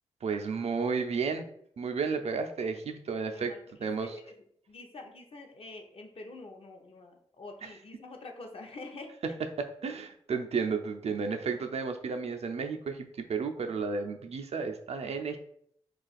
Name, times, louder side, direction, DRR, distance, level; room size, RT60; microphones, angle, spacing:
voice 1, 0.2-1.5 1.8-3.5 3.8-4.1 9.6-15.4, right 5 dB, 60° right, 6 dB, 0.4 m, -32 dB
voice 2, 3.3-4.4 4.7-9.1, left 2 dB, 50° left, 3 dB, 0.6 m, -46 dB
2.4 x 2.3 x 4.0 m, 0.67 s
cardioid pair, 50°, 12 cm